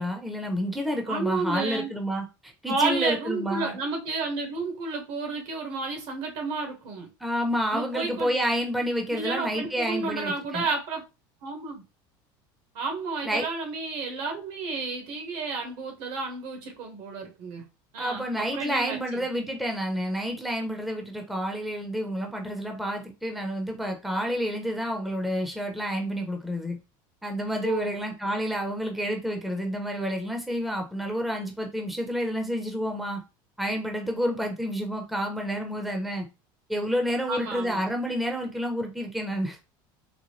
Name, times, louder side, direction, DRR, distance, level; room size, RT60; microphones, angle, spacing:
voice 1, 0.0-3.8 7.2-10.7 13.2-13.5 18.0-26.8 27.2-33.2 33.6-36.3 36.7-39.6, equal, ahead, 0.8 m, -29 dB
voice 2, 1.1-1.9 2.7-7.1 7.7-8.3 9.1-11.0 11.4-11.8 12.7-17.7 17.9-19.3 27.6-28.0 37.3-37.8, right 4 dB, 65° right, 1.5 m, -31 dB
4.0 x 2.2 x 3.2 m
supercardioid pair, 115°, 11 cm